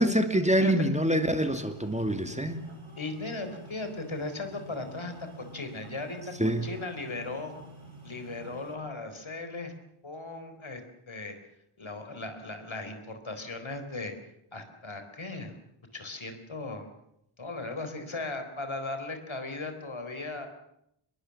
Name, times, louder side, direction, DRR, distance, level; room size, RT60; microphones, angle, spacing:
voice 1, 0.0-2.6 6.4-6.7, right 1 dB, 15° right, 8 dB, 2.5 m, -25 dB
sound 1, 1.2-8.8, right 2 dB, 70° right, 7.9 m, -48 dB
voice 2, 3.0-7.5 8.0-9.7 10.0-10.8 11.1-11.3 11.8-14.1 14.5-15.5 15.9-16.9 17.4-20.5, left 3 dB, 70° left, 7 dB, 4.4 m, -37 dB
24.5 x 22.0 x 7.3 m, 0.76 s
wide cardioid pair, 55°, 49 cm